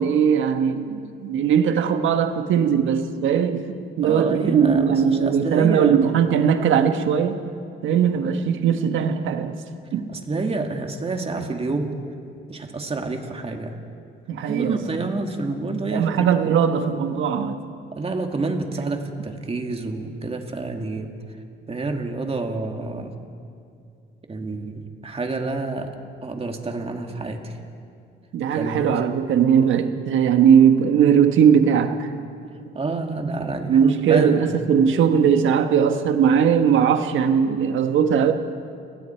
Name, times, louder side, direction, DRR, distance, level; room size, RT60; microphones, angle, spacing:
voice 1, 0.0-7.4 7.8-9.6 9.9-10.1 14.3-15.1 15.9-17.6 28.3-32.1 33.7-38.3, right 7 dB, 75° right, 7 dB, 1.4 m, -19 dB
voice 2, 4.0-6.1 10.1-11.9 12.5-13.8 14.5-16.1 17.9-21.1 21.7-23.1 24.3-25.9 26.2-27.6 28.5-28.9 32.5-34.5, right 3 dB, 30° right, 3 dB, 2.3 m, -28 dB
30.0 x 19.0 x 4.6 m, 2.5 s
cardioid pair, 90°, 20 cm